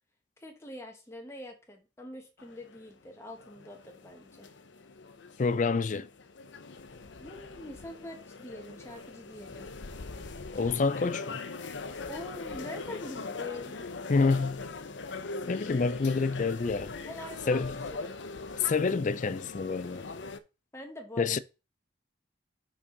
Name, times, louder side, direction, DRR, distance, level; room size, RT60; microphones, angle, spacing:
voice 1, 0.4-4.5 7.2-9.7 12.1-13.8 17.1-18.2 20.7-21.4, left 1 dB, 15° left, 1.3 m, -44 dB
sound 1, 2.4-20.4, left 3 dB, 80° left, 0.7 m, -42 dB
voice 2, 5.4-6.1 10.5-11.4 14.1-14.7 15.5-16.9 17.5-17.8 18.6-20.0 21.2-21.4, left 4 dB, 45° left, 0.4 m, -27 dB
6.1 x 6.1 x 3.9 m
head